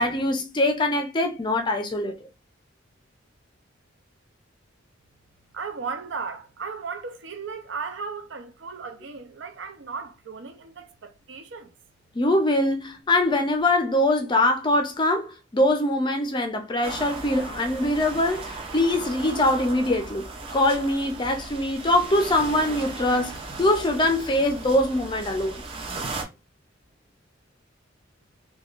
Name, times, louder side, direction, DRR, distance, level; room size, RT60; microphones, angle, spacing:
voice 1, 0.0-2.3 12.1-25.6, left 1 dB, 25° left, 0.4 m, -23 dB
voice 2, 5.5-11.7, right 5 dB, 70° right, 0.6 m, -36 dB
sound 1, 16.8-26.2, right 3 dB, 30° right, 0.6 m, -37 dB
3.5 x 2.2 x 2.4 m
head